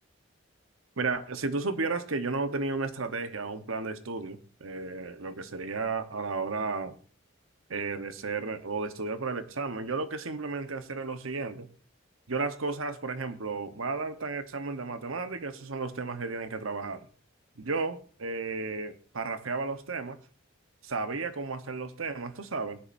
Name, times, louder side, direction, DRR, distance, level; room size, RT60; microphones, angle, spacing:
voice 1, 1.0-7.0 7.7-11.7 12.3-17.1 17.6-20.2 20.8-22.8, right 3 dB, 90° right, 1.1 m, -33 dB
20.0 x 10.5 x 2.6 m
head